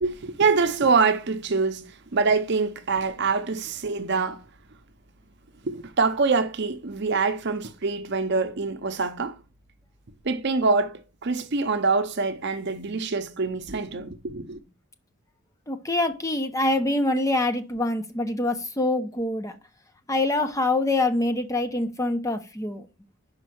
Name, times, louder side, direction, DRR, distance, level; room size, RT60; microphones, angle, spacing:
voice 1, 0.0-4.4 5.6-9.4 10.2-14.6, right 4 dB, 55° right, 0.7 m, -25 dB
voice 2, 15.7-19.6 20.1-22.8, left 2 dB, 15° left, 0.8 m, -25 dB
5.5 x 5.2 x 6.2 m
head